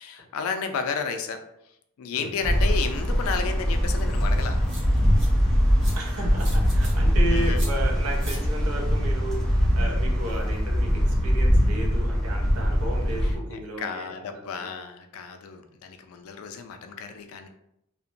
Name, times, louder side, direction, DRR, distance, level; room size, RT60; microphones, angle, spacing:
voice 1, 0.0-1.4 2.0-4.6 7.3-7.6 13.5-17.5, left 6 dB, 70° left, 6 dB, 0.4 m, -32 dB
sound 1, 2.4-13.4, equal, 5° left, 0.4 m, -22 dB
sound 2, 4.0-4.1 4.7-5.3 5.8-6.0 6.4-6.9 7.5-7.7 8.2-8.4, right 1 dB, 50° right, 0.9 m, -40 dB
voice 2, 5.9-14.7, right 1 dB, 70° right, 1 dB, 0.6 m, -34 dB
2.8 x 2.1 x 2.5 m, 0.80 s
head